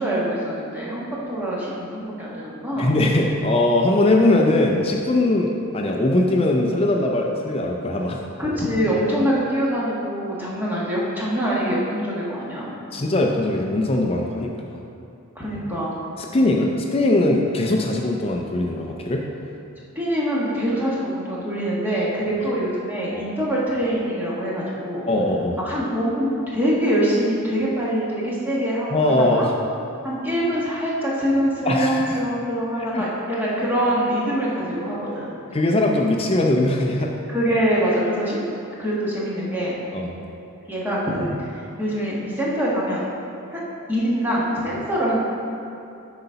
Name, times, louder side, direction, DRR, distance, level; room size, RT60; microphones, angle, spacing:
voice 1, 0.0-2.9 8.4-12.7 15.3-15.9 19.9-25.1 25.6-29.4 30.0-35.4 37.3-38.5 38.8-39.8 40.7-41.3 41.8-43.1 43.5-43.6 43.9-45.2, equal, 10° right, -7 dB, 1.3 m, -24 dB
voice 2, 2.8-8.2 12.9-14.5 16.2-19.2 23.1-23.3 25.1-25.6 28.9-29.5 31.6-32.2 32.8-33.0 35.5-37.1 39.9-40.1, left 2 dB, 25° left, 1 dB, 0.4 m, -20 dB
7.9 x 4.0 x 5.6 m, 2.7 s
head